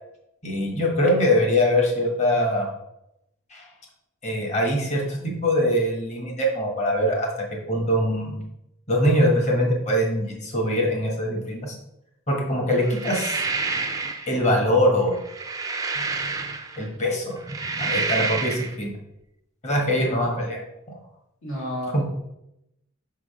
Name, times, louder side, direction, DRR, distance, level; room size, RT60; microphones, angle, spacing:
voice 1, 0.4-2.7 3.5-3.7 4.2-7.3 7.7-8.4 8.9-11.8 12.3-13.4 14.3-15.2 16.8-17.4 17.8-18.9 19.6-20.6 20.9-21.0 21.9-22.0, equal, 35° left, 0 dB, 1.5 m, -22 dB
sound 1, 12.8-14.3 15.1-16.9 17.4-18.7, right 4 dB, 15° right, 0.5 m, -28 dB
voice 2, 21.4-22.0, equal, 70° left, -2 dB, 2.3 m, -31 dB
6.2 x 3.8 x 4.9 m, 0.84 s
head